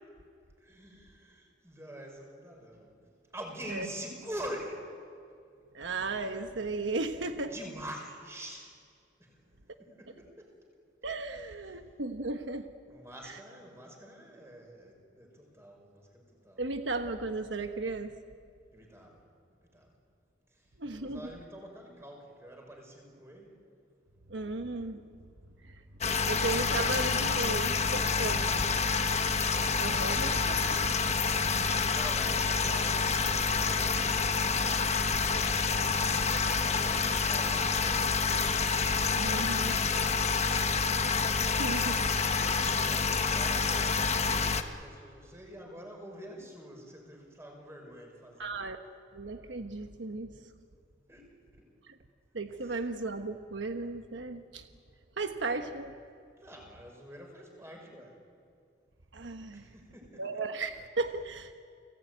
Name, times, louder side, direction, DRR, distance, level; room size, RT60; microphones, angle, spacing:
voice 1, 0.6-2.9 3.3-4.8 7.5-8.7 9.2-9.3 9.8-10.5 12.9-16.6 18.7-19.2 19.7-19.9 20.9-23.5 30.2-36.1 36.6-38.5 42.2-48.5 51.1-51.3 56.4-58.2 59.5-60.4, equal, 15° right, 1 dB, 5.3 m, -46 dB
voice 2, 5.7-7.5 11.0-12.7 13.2-13.4 16.6-18.1 20.8-21.3 24.3-25.0 25.6-25.8 26.3-28.7 29.0-29.1 29.8-30.8 39.2-39.8 41.4-42.0 48.4-48.8 49.1-50.3 51.9-52.0 52.3-54.7 55.2-55.9 59.1-59.7 60.1-61.6, right 3 dB, 80° right, 7 dB, 1.1 m, -35 dB
sound 1, 26.0-44.6, left 5 dB, 35° left, 1.1 m, -28 dB
30.0 x 18.5 x 9.3 m, 2.3 s
head